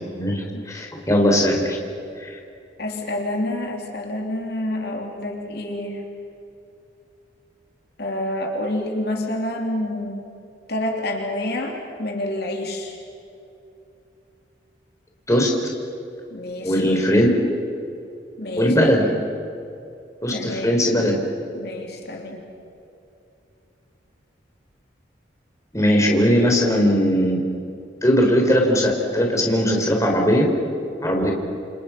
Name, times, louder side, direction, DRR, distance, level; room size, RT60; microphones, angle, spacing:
voice 1, 0.1-1.8 2.2-2.3 15.3-15.5 16.6-17.3 18.6-19.1 20.2-21.2 25.7-27.4 28.0-30.5 31.0-31.3, equal, 15° left, 0 dB, 4.0 m, -19 dB
voice 2, 2.8-6.1 8.0-10.3 10.7-13.0 16.3-17.0 18.4-18.9 20.3-20.8 21.5-22.5, left 1 dB, 60° left, 1 dB, 3.3 m, -28 dB
28.5 x 28.0 x 6.0 m, 2.6 s
head